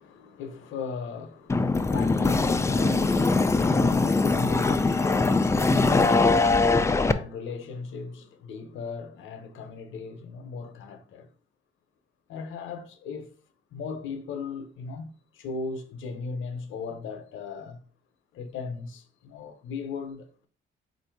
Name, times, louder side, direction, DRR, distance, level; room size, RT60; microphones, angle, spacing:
voice 1, 0.0-11.3 12.3-13.3 13.7-17.8 18.3-20.5, left 5 dB, 80° left, 0.8 m, -37 dB
sound 1, 1.5-7.1, left 3 dB, 15° left, 0.4 m, -22 dB
4.3 x 2.6 x 4.5 m
cardioid pair, 90°, 20 cm